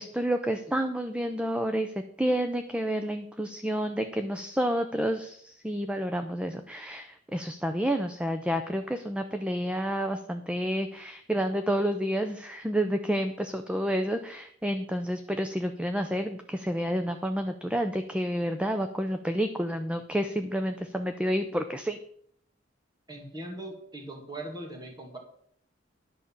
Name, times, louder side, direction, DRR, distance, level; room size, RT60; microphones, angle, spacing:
voice 1, 0.0-22.0, equal, 5° right, 7 dB, 0.5 m, -29 dB
voice 2, 23.1-25.2, right 1 dB, 20° right, 1 dB, 2.0 m, -40 dB
11.0 x 5.2 x 7.3 m, 0.66 s
head